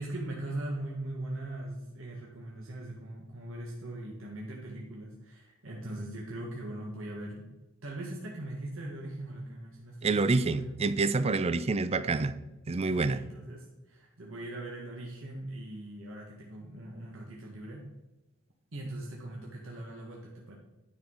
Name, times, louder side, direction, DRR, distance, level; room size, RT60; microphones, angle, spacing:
voice 1, 0.0-7.5 7.8-10.7 12.9-17.8 18.7-20.6, right 1 dB, 75° right, -2 dB, 1.4 m, -40 dB
voice 2, 10.0-12.4 12.7-13.2, right 3 dB, 30° right, 14 dB, 0.5 m, -27 dB
10.5 x 6.1 x 3.8 m, 1.1 s
head